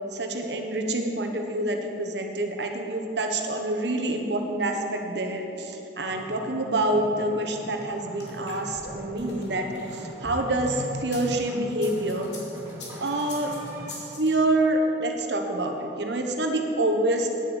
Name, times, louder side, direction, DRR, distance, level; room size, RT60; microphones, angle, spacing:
voice 1, 0.1-9.7 10.2-12.3 13.0-13.5 14.2-17.3, right 1 dB, 75° right, 4 dB, 1.3 m, -27 dB
sound 1, 6.0-13.9, right 1 dB, 20° right, 2.7 m, -43 dB
sound 2, 7.9-11.2 11.7-14.3, left 2 dB, 80° left, 2.8 m, -40 dB
10.0 x 8.0 x 8.1 m, 3.0 s
head